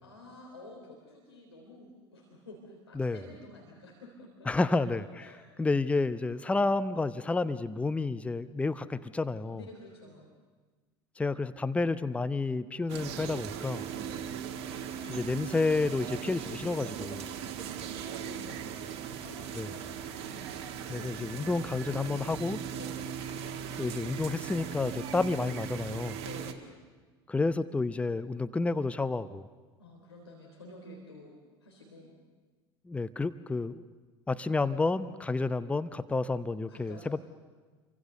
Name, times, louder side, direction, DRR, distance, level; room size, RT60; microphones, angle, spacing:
voice 1, 0.0-5.4 9.5-10.4 13.9-14.4 14.8-15.6 17.4-20.6 22.7-23.1 26.2-26.6 29.8-32.1 36.7-37.2, left 2 dB, 80° left, -1 dB, 3.5 m, -50 dB
voice 2, 4.5-5.0 5.6-9.6 11.2-13.9 15.1-17.3 19.5-19.7 20.9-22.6 23.8-26.2 27.3-29.5 32.9-33.8 34.3-37.2, left 3 dB, 10° left, 14 dB, 0.7 m, -30 dB
sound 1, 12.9-26.5, right 8 dB, 50° right, 1.9 m, -39 dB
29.5 x 24.0 x 6.7 m, 1.4 s
figure-of-eight pair, 70°, 14 cm